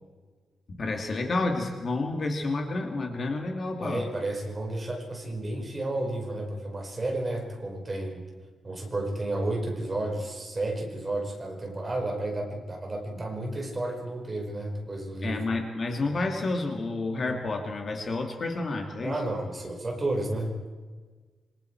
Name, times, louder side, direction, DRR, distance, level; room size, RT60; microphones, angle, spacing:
voice 1, 0.8-4.1 15.2-19.2, left 2 dB, 35° left, 3 dB, 2.6 m, -30 dB
voice 2, 3.8-8.2 8.6-15.4 19.0-20.5, right 2 dB, 20° right, 1 dB, 5.0 m, -32 dB
27.0 x 25.0 x 4.7 m, 1.4 s
wide cardioid pair, 165°, 0 cm